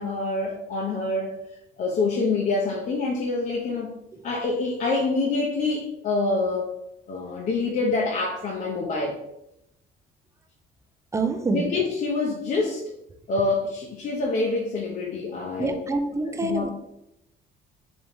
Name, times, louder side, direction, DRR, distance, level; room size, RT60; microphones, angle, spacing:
voice 1, 0.0-1.3 1.8-3.9 4.2-6.7 7.1-9.2 11.5-12.8 13.3-16.0 16.3-16.7, left 3 dB, 50° left, -2 dB, 0.7 m, -26 dB
voice 2, 11.1-11.6 15.6-16.7, right 3 dB, 15° right, 7 dB, 0.5 m, -26 dB
4.0 x 3.1 x 3.4 m, 0.82 s
cardioid pair, 110°, 17 cm